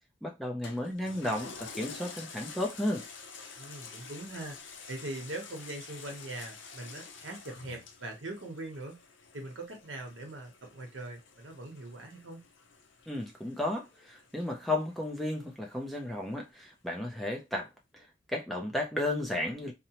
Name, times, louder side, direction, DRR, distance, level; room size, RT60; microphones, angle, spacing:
voice 1, 0.2-3.0 13.1-17.7 17.9-18.1 18.3-19.7, left 1 dB, ahead, 0.4 m, -33 dB
Toilet flush, 0.6-15.4 15.9-16.0, left 5 dB, 80° left, 0.5 m, -49 dB
voice 2, 3.6-4.6 4.9-9.0 9.3-12.4, right 2 dB, 75° right, 0.8 m, -41 dB
2.8 x 2.0 x 2.8 m
head